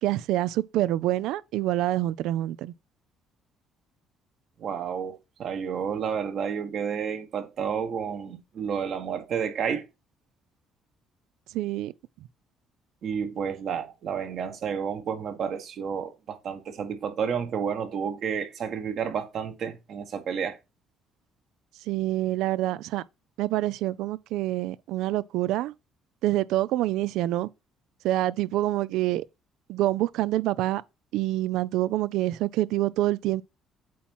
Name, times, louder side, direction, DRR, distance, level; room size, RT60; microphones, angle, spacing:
voice 1, 0.0-2.7 11.5-11.9 21.9-23.0 23.4-25.7 26.2-27.5 28.0-29.2 29.7-30.8 31.1-33.4, right 15 dB, 80° right, 0.4 m, -26 dB
voice 2, 4.6-9.9 13.0-20.6, right 7 dB, 60° right, 1.5 m, -31 dB
8.5 x 3.0 x 5.4 m
cardioid pair, 95°, 0 cm